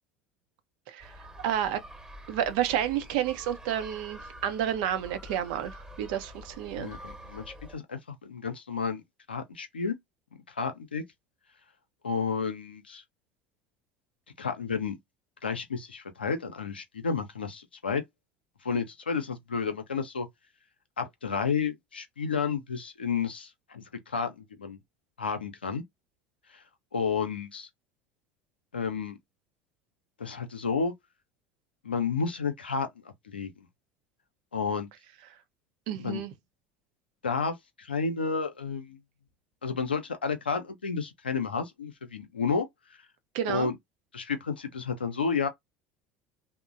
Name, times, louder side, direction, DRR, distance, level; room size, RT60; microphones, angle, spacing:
sound 1, 1.0-7.8, equal, 15° right, 1.1 m, -47 dB
voice 1, 1.4-1.8 2.3-7.0 35.9-36.3 43.3-43.7, right 10 dB, 65° right, 0.6 m, -30 dB
voice 2, 6.7-9.0 9.3-10.0 10.5-11.0 12.0-13.0 14.4-15.0 15.4-18.0 18.6-20.3 21.0-24.8 25.2-25.8 26.5-26.6 26.9-27.7 28.7-29.2 30.2-30.9 31.8-32.9 33.2-33.7 34.5-34.9 36.0-36.2 37.2-39.0 39.6-42.7 43.5-43.8 44.1-45.5, left 5 dB, 90° left, 0.5 m, -31 dB
2.9 x 2.1 x 2.4 m
hypercardioid pair, 70°, 5 cm